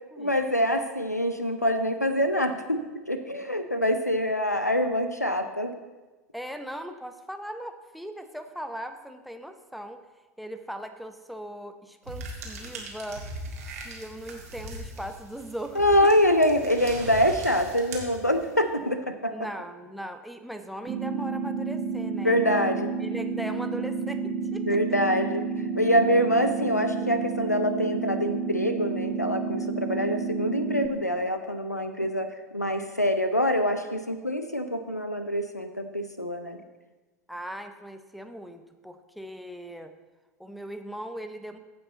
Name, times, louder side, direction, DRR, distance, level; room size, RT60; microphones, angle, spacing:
voice 1, 0.2-2.8 3.1-5.7 15.8-19.4 22.2-22.9 24.6-25.5 25.7-36.6, equal, 90° left, 8 dB, 0.6 m, -25 dB
voice 2, 6.3-10.0 10.4-13.3 13.8-16.1 19.3-22.7 23.0-25.0 37.3-39.9 40.4-41.6, equal, ahead, 9 dB, 0.7 m, -39 dB
sound 1, 12.1-18.7, right 2 dB, 70° right, 1.8 m, -40 dB
sound 2, 20.9-30.9, right 5 dB, 30° right, 1.4 m, -30 dB
15.0 x 5.5 x 3.9 m, 1.2 s
figure-of-eight pair, 80°, 9 cm